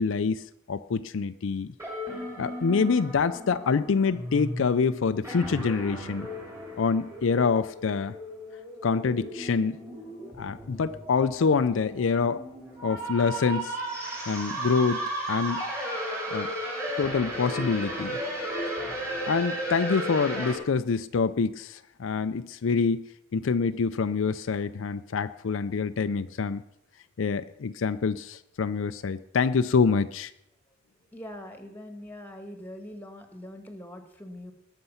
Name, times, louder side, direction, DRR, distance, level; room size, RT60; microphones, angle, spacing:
voice 1, 0.0-1.7 2.4-6.3 6.8-8.2 8.8-9.8 10.4-12.4 12.8-13.7 14.3-15.6 16.3-16.5 17.0-18.2 19.3-26.6 27.2-30.3, left 5 dB, 70° left, 11 dB, 0.5 m, -26 dB
sound 1, 1.8-20.5, right 1 dB, 15° right, 3.3 m, -35 dB
voice 2, 31.1-34.5, left 1 dB, 10° left, 6 dB, 1.6 m, -42 dB
19.5 x 6.7 x 5.7 m, 0.79 s
head